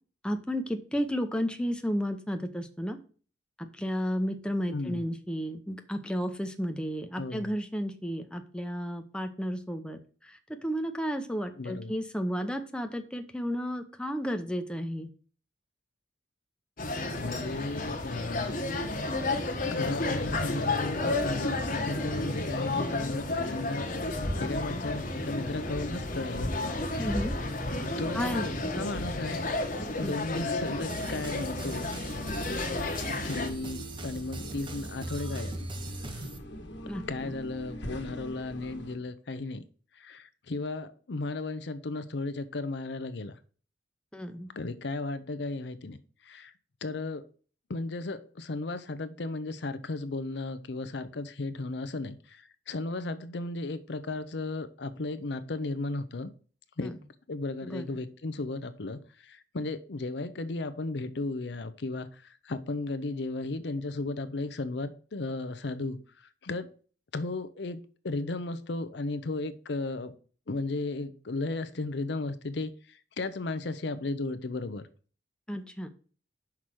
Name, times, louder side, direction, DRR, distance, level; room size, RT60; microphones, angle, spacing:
voice 1, 0.2-3.0 3.6-15.1 27.0-27.3 28.1-28.9 30.0-30.1 36.9-37.3 44.1-44.5 56.8-56.9 57.6-57.9 75.5-75.9, equal, 5° left, 0.7 m, -33 dB
voice 2, 4.7-5.0 7.2-7.5 11.6-11.9 17.2-18.8 19.7-26.5 27.0-27.1 28.0-31.9 33.2-35.5 36.1-36.2 37.1-39.7 40.0-43.4 44.6-46.0 46.2-46.5 46.8-47.2 47.7-56.3 56.8-57.0 57.3-62.1 62.4-66.0 66.4-66.7 67.1-70.1 70.5-72.7 73.2-74.8, left 2 dB, 65° left, 0.6 m, -35 dB
sound 1, 16.8-33.5, left 2 dB, 50° left, 1.1 m, -32 dB
sound 2, 29.6-39.0, equal, 80° left, 1.5 m, -44 dB
sound 3, 30.9-36.4, right 2 dB, 25° right, 0.8 m, -40 dB
5.9 x 4.9 x 6.1 m
head